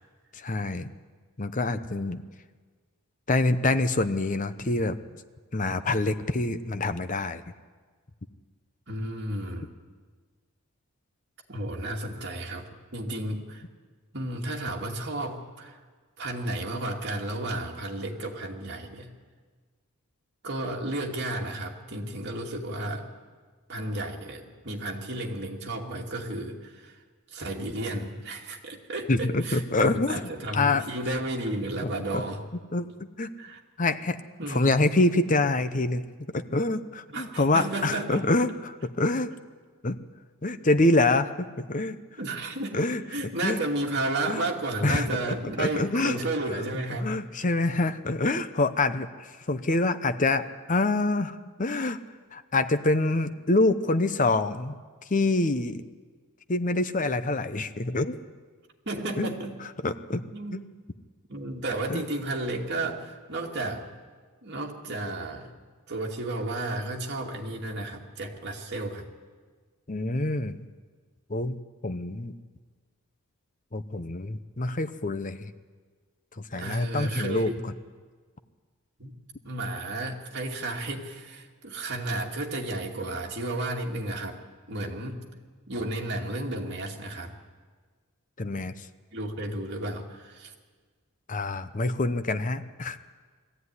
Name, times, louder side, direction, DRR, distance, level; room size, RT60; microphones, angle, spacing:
voice 1, 0.3-0.9 1.4-2.2 3.3-5.0 5.5-7.4 29.1-30.2 30.5-30.8 31.8-32.2 32.7-32.9 33.2-33.3 33.8-36.0 36.3-39.3 39.8-40.0 40.4-42.0 42.7-43.0 43.4-43.6 44.3-44.5 44.8-46.2 47.0-52.0 52.3-54.7 55.1-55.8 56.5-58.2 59.2-59.3 59.8-60.2 60.5-60.6 61.9-62.0 69.9-70.6 71.3-72.3 73.7-75.5 76.5-77.5 88.4-88.7 91.3-93.0, left 2 dB, 35° left, 11 dB, 0.8 m, -26 dB
voice 2, 8.9-9.7 11.5-13.6 14.1-15.8 16.2-19.1 20.4-23.1 23.7-27.0 27.3-32.4 33.4-33.6 34.4-34.8 37.1-38.3 42.2-42.8 43.1-47.1 58.9-59.6 60.3-60.6 61.3-63.8 64.4-65.5 65.9-69.1 76.5-77.6 79.0-79.2 79.4-84.4 84.7-85.2 85.7-87.3 89.1-90.5, right 1 dB, 50° right, -1 dB, 2.6 m, -33 dB
21.0 x 15.0 x 9.7 m, 1.5 s
head